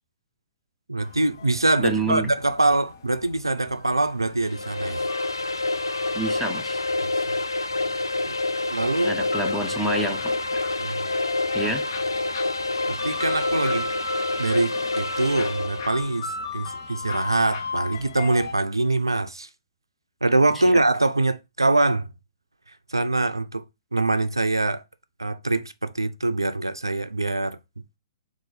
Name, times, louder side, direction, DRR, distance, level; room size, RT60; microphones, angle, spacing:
voice 1, 0.9-5.1 7.0-7.4 8.3-8.4 8.7-9.1 10.8-11.1 12.9-13.9 14.4-19.5 20.2-22.1 22.9-23.6 23.9-24.8 25.2-27.6, right 2 dB, 90° right, 0.3 m, -24 dB
sound 1, 1.0-18.5, left 3 dB, 55° left, 0.7 m, -38 dB
voice 2, 1.8-2.3 6.1-6.8 9.0-10.6 11.5-11.8 20.6-20.8, right 2 dB, 5° left, 0.7 m, -28 dB
sound 2, 4.4-16.1, left 2 dB, 85° left, 0.4 m, -27 dB
3.8 x 2.4 x 4.0 m
figure-of-eight pair, 120°, 2 cm